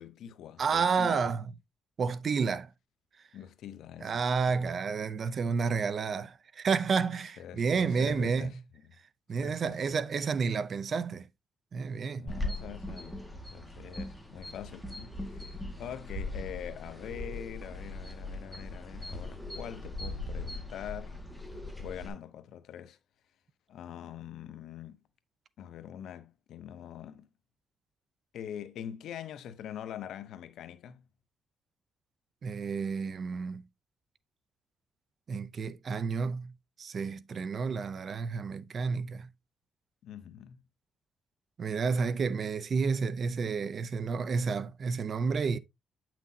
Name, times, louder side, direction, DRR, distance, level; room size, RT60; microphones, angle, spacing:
voice 1, 0.0-1.3 3.3-4.1 4.5-4.7 7.4-8.6 9.4-10.0 12.1-21.2 21.8-23.0 23.7-25.0 25.6-27.3 28.3-31.1 37.7-37.8 40.0-40.6, left 10 dB, 80° left, 0.7 m, -44 dB
voice 2, 0.6-1.5 2.0-2.7 4.0-8.5 9.3-11.3 11.7-12.3 32.4-33.6 35.3-36.5 36.8-39.3 41.6-45.6, right 5 dB, 45° right, 0.5 m, -30 dB
sound 1, 12.3-22.1, left 2 dB, ahead, 1.8 m, -40 dB
8.4 x 5.9 x 2.7 m
cardioid pair, 115°, 0 cm